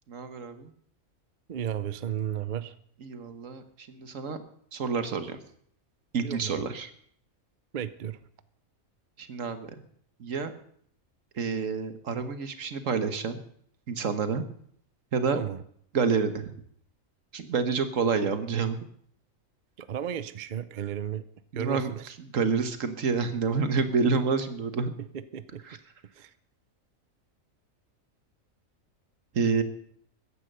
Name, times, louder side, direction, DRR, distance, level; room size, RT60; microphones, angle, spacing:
voice 1, 0.1-0.7 3.0-4.4 4.7-5.4 6.1-6.9 9.2-9.7 10.2-10.5 11.4-13.4 13.9-14.4 15.1-15.4 15.9-16.5 17.3-18.8 21.5-21.9 22.3-24.9 29.3-29.6, right 5 dB, 70° right, 9 dB, 1.6 m, -28 dB
voice 2, 1.5-2.8 6.2-6.6 7.7-8.2 15.3-15.6 19.8-21.2 21.5-22.1 25.0-25.8 26.2-26.3, right 9 dB, 45° right, 14 dB, 0.7 m, -34 dB
14.5 x 10.0 x 6.7 m, 0.63 s
omnidirectional pair, 1.4 m